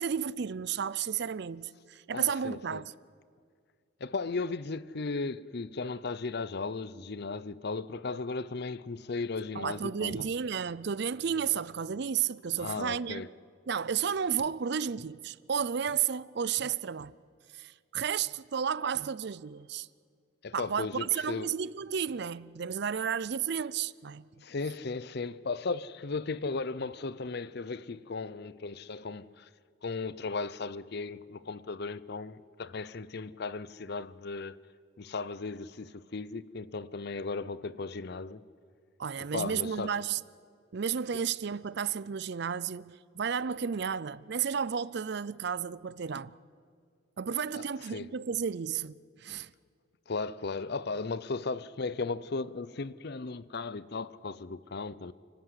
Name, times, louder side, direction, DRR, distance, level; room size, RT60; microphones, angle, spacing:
voice 1, 0.0-2.9 9.5-13.3 13.7-17.1 17.5-19.9 20.5-24.3 39.0-40.2 40.7-46.3 47.2-49.5, right 7 dB, 55° right, 0.5 m, -32 dB
voice 2, 2.1-2.8 4.0-10.2 12.6-13.3 20.4-21.5 24.4-29.5 29.8-34.6 35.0-38.4 39.2-39.9 47.5-47.6 47.9-48.1 50.1-55.1, left 3 dB, 50° left, 0.6 m, -36 dB
29.0 x 12.0 x 9.8 m
head